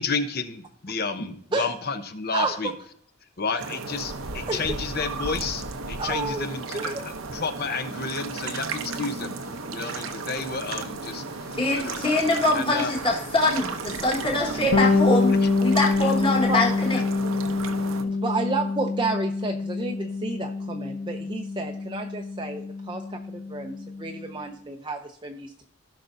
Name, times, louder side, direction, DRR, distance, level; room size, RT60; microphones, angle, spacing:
voice 1, 0.0-2.7 3.4-12.2 12.5-12.9 16.9-17.0, left 4 dB, 45° left, 8 dB, 0.8 m, -31 dB
sound 1, 3.6-18.0, right 3 dB, 80° right, 0.8 m, -34 dB
voice 2, 6.0-6.5 6.7-7.0 15.1-15.2 16.4-16.7 18.0-25.7, right 3 dB, 20° right, 2 dB, 0.6 m, -31 dB
voice 3, 11.6-15.3 15.6-17.0, left 2 dB, 25° left, -1 dB, 1.6 m, -24 dB
Bass guitar, 14.7-24.3, left 3 dB, 85° left, 1.1 m, -26 dB
16.5 x 5.9 x 2.7 m, 0.65 s
head